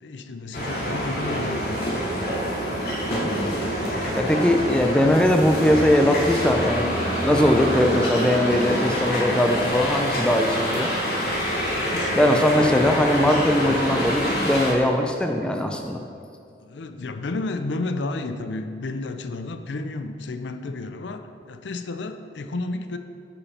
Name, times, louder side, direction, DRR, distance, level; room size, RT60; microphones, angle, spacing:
voice 1, 0.0-2.1 11.1-13.1 16.6-23.0, left 2 dB, 85° left, 8 dB, 0.5 m, -32 dB
sound 1, 0.5-14.7, equal, 60° left, 2.4 m, -26 dB
voice 2, 3.1-3.6 4.2-7.0 7.2-11.3 12.2-16.0, left 1 dB, 5° left, 3 dB, 0.5 m, -21 dB
8.4 x 5.5 x 5.7 m, 2.4 s
head